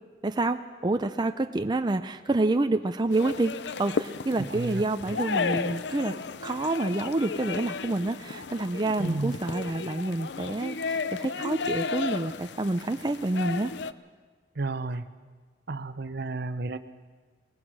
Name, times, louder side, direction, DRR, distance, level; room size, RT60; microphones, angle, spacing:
voice 1, 0.2-3.5 3.8-6.2 6.4-13.7, right 2 dB, 25° right, 8 dB, 0.5 m, -28 dB
sound 1, 3.1-13.9, left 4 dB, 65° left, 0.6 m, -34 dB
voice 2, 4.4-4.9 9.0-9.4 14.6-15.0 15.7-16.8, right 2 dB, 60° right, 12 dB, 0.8 m, -32 dB
22.0 x 19.0 x 6.2 m, 1.5 s
head